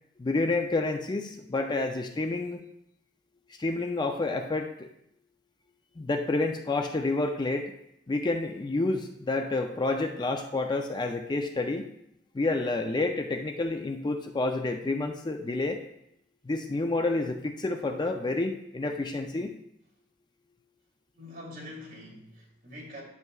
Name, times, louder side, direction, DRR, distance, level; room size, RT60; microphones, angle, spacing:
voice 1, 0.2-2.6 3.6-4.9 6.0-7.7 8.1-11.8 12.3-15.8 16.4-19.5, left 2 dB, 25° left, 5 dB, 0.4 m, -29 dB
voice 2, 21.1-23.0, left 1 dB, 50° right, -4 dB, 2.8 m, -44 dB
11.0 x 6.7 x 2.4 m, 0.78 s
head